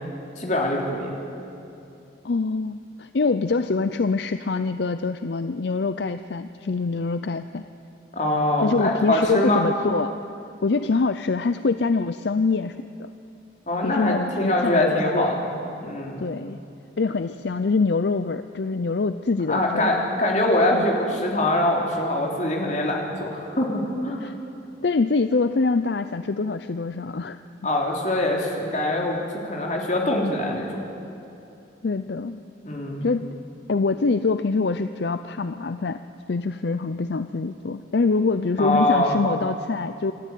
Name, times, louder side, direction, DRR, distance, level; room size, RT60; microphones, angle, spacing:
voice 1, 0.4-1.1 8.1-9.7 13.7-15.5 15.8-16.2 19.5-24.2 27.6-29.2 29.5-30.7 32.6-33.1 38.6-39.1, left 1 dB, 40° left, -1 dB, 3.5 m, -23 dB
voice 2, 2.2-7.6 8.6-10.1 10.6-13.1 13.8-15.3 16.2-16.6 17.0-19.9 20.7-20.9 24.2-24.3 24.8-27.4 31.8-32.4 33.0-33.3 33.7-36.0 36.3-40.1, left 4 dB, 60° left, 11 dB, 0.5 m, -24 dB
27.0 x 13.0 x 9.3 m, 2.7 s
head